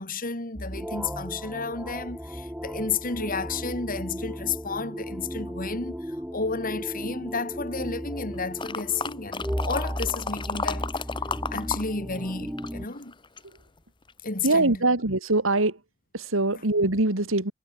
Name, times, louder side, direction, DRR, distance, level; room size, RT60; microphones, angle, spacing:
voice 1, 0.0-11.0 11.5-13.1 14.2-14.8, left 4 dB, 40° left, 3.2 m, -32 dB
sound 1, 0.6-12.9, equal, 5° right, 5.9 m, -35 dB
sound 2, 8.6-11.8 12.1-13.6 14.1-14.2, left 4 dB, 25° left, 1.0 m, -32 dB
voice 2, 14.4-15.8 16.1-17.5, right 2 dB, 70° right, 2.7 m, -23 dB
head